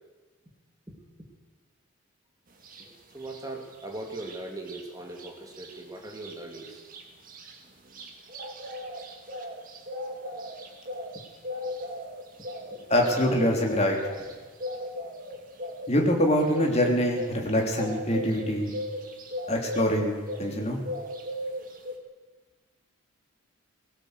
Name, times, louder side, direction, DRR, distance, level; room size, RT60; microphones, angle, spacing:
sound 1, 2.6-2.9 3.2-4.8 5.1-5.3 5.5-20.6 20.8-22.0, left 1 dB, 40° right, 2.4 m, -37 dB
voice 1, 2.8-6.8 12.6-12.9, right 2 dB, 15° right, 1 dB, 2.7 m, -40 dB
voice 2, 12.9-14.0 15.9-18.8 19.5-20.1 20.4-20.8, equal, 30° left, 1 dB, 3.3 m, -24 dB
18.0 x 17.5 x 8.1 m, 1.3 s
head